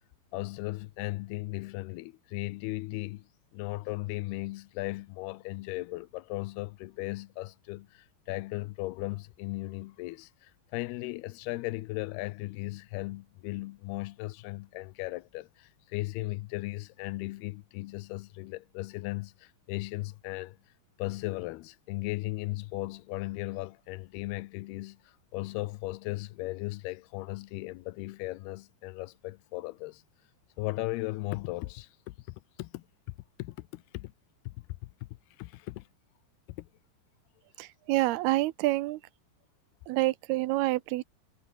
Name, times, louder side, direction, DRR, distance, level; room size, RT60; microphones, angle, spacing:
voice 1, 0.3-3.3 3.5-20.6 21.0-30.0 30.6-32.8 33.4-34.1 34.5-34.9 35.4-35.9 36.6-36.7, left 20 dB, 85° left, 2.7 m, -37 dB
voice 2, 37.6-39.0 39.9-41.0, right 18 dB, 85° right, 2.8 m, -27 dB
omnidirectional pair, 4.5 m